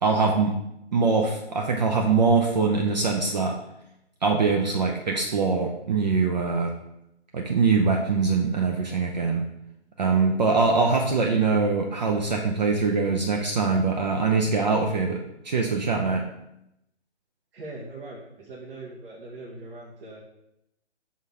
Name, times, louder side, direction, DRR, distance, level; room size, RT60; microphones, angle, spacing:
voice 1, 0.0-0.5 0.9-3.5 4.2-6.7 7.3-9.5 10.0-15.2 15.4-16.2, right 4 dB, 40° right, 1 dB, 0.6 m, -23 dB
voice 2, 17.5-20.3, right 2 dB, 55° right, -4 dB, 1.5 m, -41 dB
5.6 x 3.7 x 4.7 m, 0.83 s
hypercardioid pair, 155°, 34 cm